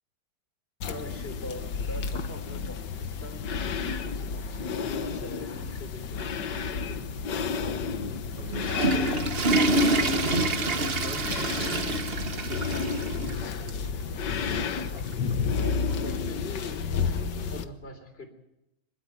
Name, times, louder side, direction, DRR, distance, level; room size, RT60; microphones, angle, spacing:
sound 1, 0.8-17.6, left 5 dB, 80° left, 1.8 m, -31 dB
voice 1, 0.9-7.0 7.5-7.9 8.6-8.7 15.6-18.3, left 2 dB, 35° left, 6 dB, 3.9 m, -43 dB
voice 2, 7.9-8.7 9.6-10.1 10.6-14.1, right 2 dB, 70° right, 2 dB, 3.5 m, -43 dB
Water / Toilet flush, 8.4-13.4 13.7-13.8 14.5-14.6 15.9-16.0, right 2 dB, 40° right, 1.2 m, -27 dB
26.5 x 12.5 x 9.4 m, 0.86 s
omnidirectional pair, 1.9 m